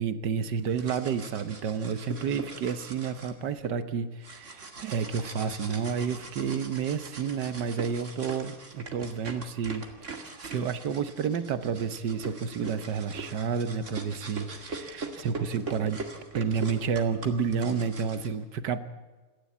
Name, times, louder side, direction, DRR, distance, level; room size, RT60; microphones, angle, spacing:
voice 1, 0.0-16.0 16.3-18.8, right 6 dB, 60° right, 12 dB, 1.5 m, -30 dB
sound 1, 0.6-3.7 4.2-18.3, right 3 dB, 35° right, 2.4 m, -42 dB
27.5 x 12.0 x 8.6 m, 1.3 s
omnidirectional pair, 2.4 m